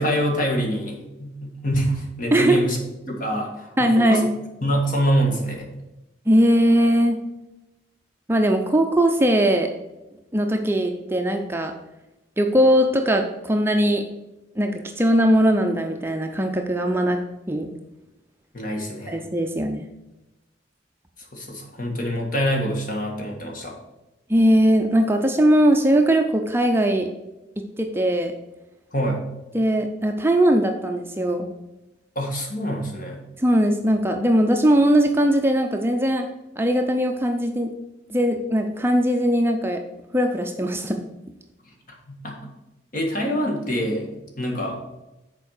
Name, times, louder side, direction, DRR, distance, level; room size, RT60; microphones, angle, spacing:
voice 1, 0.0-2.8 3.1-4.2 4.6-5.7 18.5-19.2 21.3-23.7 28.9-29.2 32.1-33.2 42.1-42.4 42.9-44.9, equal, 50° left, 0 dB, 1.8 m, -25 dB
voice 2, 3.8-4.3 6.3-7.2 8.3-9.7 10.3-11.7 12.4-14.0 14.6-17.2 17.5-17.7 19.1-19.9 24.3-27.1 27.8-28.3 29.5-31.5 33.4-36.3 36.6-37.7 38.1-39.8 40.1-41.0, right 1 dB, 15° right, 4 dB, 0.5 m, -20 dB
7.2 x 4.5 x 6.4 m, 0.99 s
head